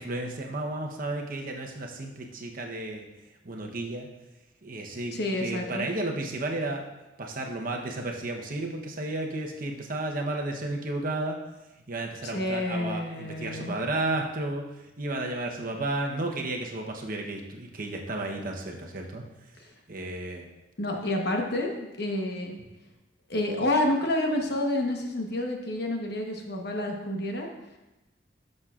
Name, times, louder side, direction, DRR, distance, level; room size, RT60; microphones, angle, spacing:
voice 1, 0.0-3.1 3.4-4.1 4.6-6.9 7.2-11.4 11.9-14.7 15.0-19.2 19.9-20.5, right 2 dB, 50° right, 2 dB, 0.9 m, -33 dB
voice 2, 5.1-5.9 12.2-13.8 20.8-21.7 22.0-22.6 23.3-27.5, left 1 dB, 60° left, 2 dB, 1.1 m, -29 dB
11.5 x 6.5 x 2.4 m, 1.0 s
head